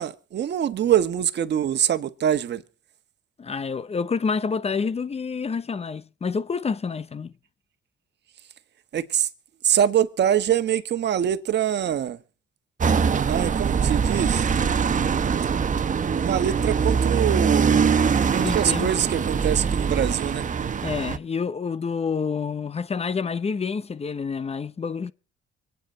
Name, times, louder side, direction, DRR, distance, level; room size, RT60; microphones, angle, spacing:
voice 1, 0.0-2.6 8.9-9.3 9.6-12.2 13.3-14.5 16.2-17.9 18.3-20.5, right 9 dB, 60° right, 1.3 m, -24 dB
voice 2, 3.4-7.3 18.4-18.9 20.8-25.1, left 5 dB, 30° left, 0.8 m, -28 dB
sound 1, 12.8-21.2, right 6 dB, 40° right, 1.0 m, -23 dB
25.0 x 9.3 x 4.5 m
cardioid pair, 90°, 20 cm